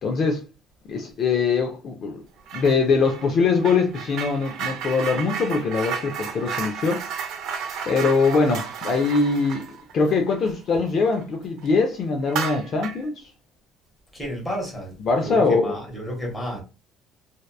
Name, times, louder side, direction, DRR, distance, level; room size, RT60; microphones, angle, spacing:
voice 1, 0.0-0.4 0.9-2.2 2.5-7.0 7.9-9.6 9.9-13.2 15.1-15.8, left 4 dB, 35° left, 0.3 m, -22 dB
sound 1, 2.5-2.8 3.0-11.2 11.6-11.7 12.2-13.1, right 7 dB, 60° right, 0.5 m, -33 dB
voice 2, 14.1-16.6, equal, 5° left, 0.9 m, -31 dB
2.7 x 2.1 x 2.2 m
cardioid pair, 165°, 0 cm